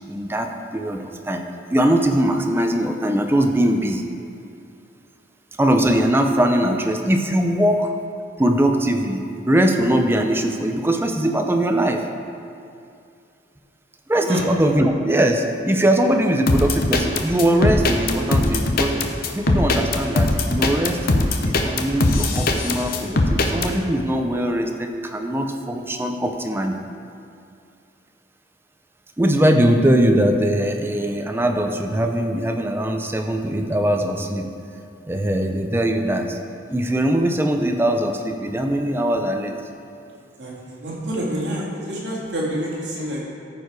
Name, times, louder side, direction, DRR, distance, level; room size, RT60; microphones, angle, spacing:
voice 1, 0.1-1.4 1.7-4.0 5.6-7.9 8.4-12.1 14.1-18.9 19.3-26.8 29.2-34.5 35.1-36.4 36.7-39.5, right 1 dB, 10° right, 4 dB, 0.5 m, -21 dB
sound 1, 16.5-23.7, left 2 dB, 50° left, 0.7 m, -20 dB
voice 2, 40.2-43.2, equal, 65° right, -6 dB, 2.3 m, -28 dB
14.0 x 4.6 x 4.7 m, 2.5 s
head